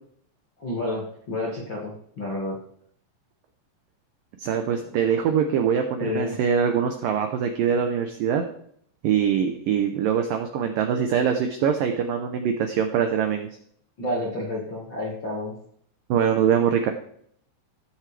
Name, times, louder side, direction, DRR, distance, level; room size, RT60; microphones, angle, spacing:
voice 1, 0.6-2.6 6.0-6.4 14.0-15.5, left 1 dB, 50° left, -4 dB, 1.5 m, -30 dB
voice 2, 4.4-8.4 9.0-13.5 16.1-16.9, right 8 dB, 90° right, 5 dB, 1.9 m, -23 dB
16.5 x 7.5 x 3.4 m, 0.65 s
omnidirectional pair, 5.1 m